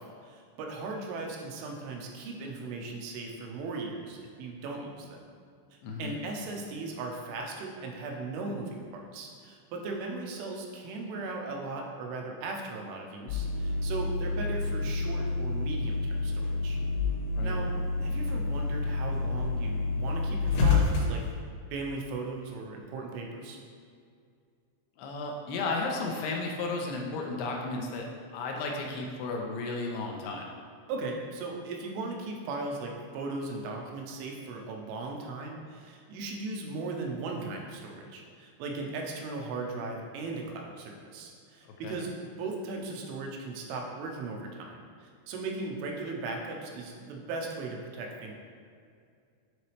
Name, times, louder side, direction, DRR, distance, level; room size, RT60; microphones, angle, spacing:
voice 1, 0.0-5.3 5.7-16.8 17.4-17.7 18.0-21.2 21.7-23.6 30.9-48.3, right 3 dB, 85° right, 0 dB, 3.2 m, -38 dB
voice 2, 5.8-6.2 17.4-17.6 25.0-28.1 28.3-30.5 41.6-42.0, left 3 dB, 85° left, 0 dB, 2.3 m, -34 dB
sound 1, 13.3-21.3, left 3 dB, 70° left, 2.5 m, -29 dB
9.8 x 4.0 x 3.3 m, 2.3 s
omnidirectional pair, 5.5 m